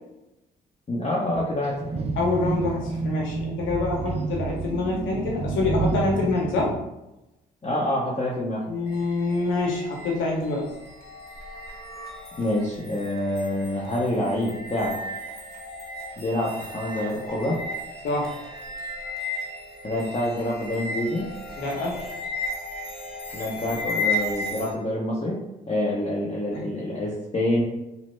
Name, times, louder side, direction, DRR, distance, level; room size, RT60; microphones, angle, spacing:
voice 1, 0.9-1.9 7.6-8.6 12.4-15.0 16.2-17.6 19.8-21.3 23.3-25.4 25.7-27.6, left 1 dB, 30° left, -5 dB, 0.7 m, -26 dB
sound 1, 1.6-6.7, right 4 dB, 30° right, 0.4 m, -29 dB
voice 2, 2.2-6.7 8.7-10.7 18.0-18.4 21.6-22.0 26.5-26.6, left 3 dB, 80° left, -1 dB, 0.9 m, -26 dB
sound 2, 8.9-24.7, left 2 dB, 50° left, 1.0 m, -35 dB
3.0 x 2.0 x 3.2 m, 0.94 s
supercardioid pair, 60°, 20 cm